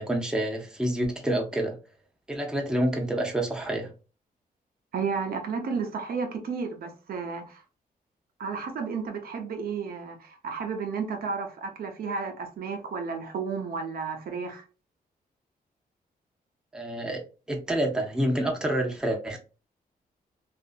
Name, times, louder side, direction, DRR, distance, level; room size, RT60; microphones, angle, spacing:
voice 1, 0.0-1.8 2.3-3.9 16.7-19.4, right 1 dB, 5° right, 0.6 m, -28 dB
voice 2, 4.9-7.6 8.4-14.6, right 5 dB, 70° right, 0.6 m, -32 dB
2.7 x 2.5 x 2.4 m
cardioid pair, 115°, 16 cm